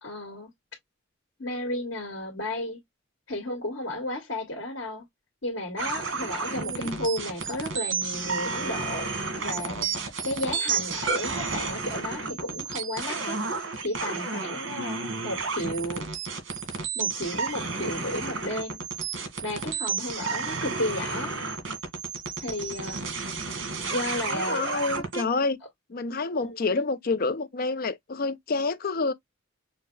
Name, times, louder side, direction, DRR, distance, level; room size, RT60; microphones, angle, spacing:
voice 1, 0.0-0.5 1.4-2.8 3.3-5.0 5.4-9.1 9.4-13.4 13.8-16.0 16.9-18.8 19.4-21.3 22.4-23.0 23.9-24.6 26.4-26.8, left 1 dB, 85° left, 1.8 m, -33 dB
sound 1, 5.8-25.2, right 4 dB, 80° right, 1.8 m, -31 dB
voice 2, 6.5-7.0 24.3-25.6 25.9-29.1, left 3 dB, 50° left, 0.6 m, -28 dB
6.3 x 2.2 x 3.3 m
head